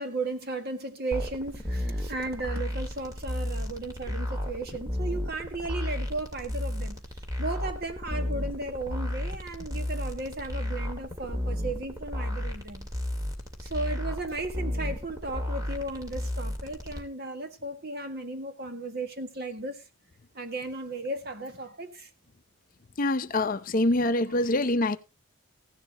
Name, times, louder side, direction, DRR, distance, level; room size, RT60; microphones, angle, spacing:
voice 1, 0.0-7.0 7.4-12.9 13.6-19.8 20.3-22.1, right 2 dB, 50° right, 1.7 m, -35 dB
sound 1, 1.1-17.0, left 1 dB, 15° right, 2.2 m, -33 dB
voice 2, 23.0-25.0, left 2 dB, 40° left, 0.6 m, -25 dB
15.5 x 11.5 x 2.9 m
head